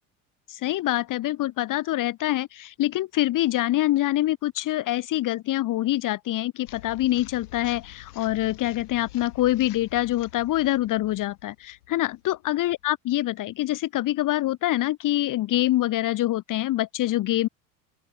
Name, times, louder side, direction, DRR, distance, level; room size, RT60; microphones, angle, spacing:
voice 1, 0.5-17.5, left 15 dB, 40° left, 1.6 m, -25 dB
sound 1, 6.7-12.8, left 16 dB, 70° left, 5.1 m, -47 dB
open air
hypercardioid pair, 75°, 47 cm